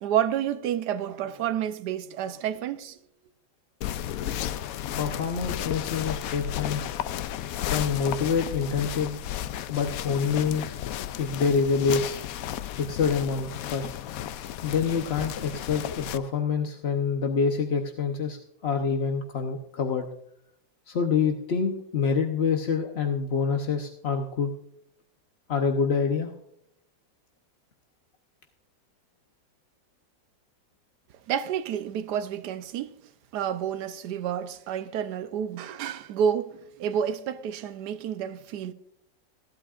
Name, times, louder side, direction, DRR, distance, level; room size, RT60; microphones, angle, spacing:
voice 1, 0.0-3.0 31.3-33.0 33.3-38.7, right 9 dB, 70° right, 1.2 m, -29 dB
sound 1, 3.8-16.2, left 11 dB, 75° left, 0.8 m, -33 dB
voice 2, 5.0-6.9 7.7-9.2 9.5-10.7 11.2-12.2 12.8-13.9 14.6-18.4 18.6-20.1 20.9-24.5 25.5-26.3, left 5 dB, 50° left, 0.8 m, -26 dB
15.5 x 12.0 x 2.4 m
omnidirectional pair, 2.0 m